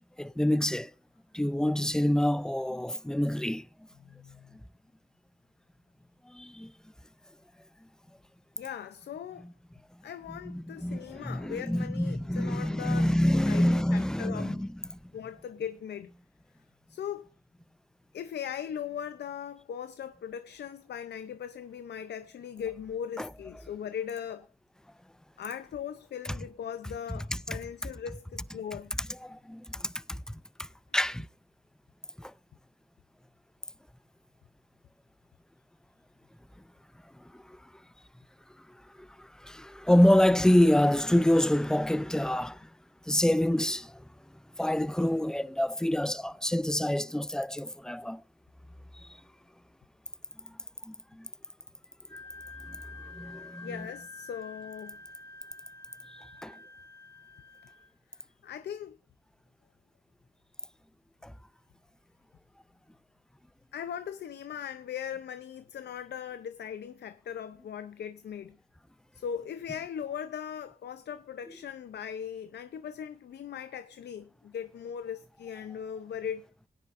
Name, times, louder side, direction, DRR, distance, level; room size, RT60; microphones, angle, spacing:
voice 1, 0.2-0.9 1.3-3.7 6.3-6.7 9.4-9.5 10.4-15.0 23.2-23.3 27.3-27.6 29.0-30.2 30.6-30.7 30.9-31.3 32.2-32.3 37.1-37.7 39.0-42.7 43.1-44.0 44.6-48.2 48.9-49.1 50.4-50.6 50.8-51.3 52.7-53.9 56.4-56.6 61.2-61.3, left 1 dB, 5° left, 0.4 m, -27 dB
voice 2, 4.0-4.6 8.6-9.5 10.0-13.2 13.5-14.6 15.1-16.1 16.9-17.3 18.1-24.5 25.4-29.0 53.6-55.0 58.1-59.0 63.7-68.6 69.1-76.5, left 8 dB, 80° left, 0.5 m, -39 dB
Wind instrument woodwind instrument, 52.1-57.9, left 3 dB, 25° left, 2.8 m, -48 dB
17.5 x 9.9 x 2.5 m
cardioid pair, 70°, 17 cm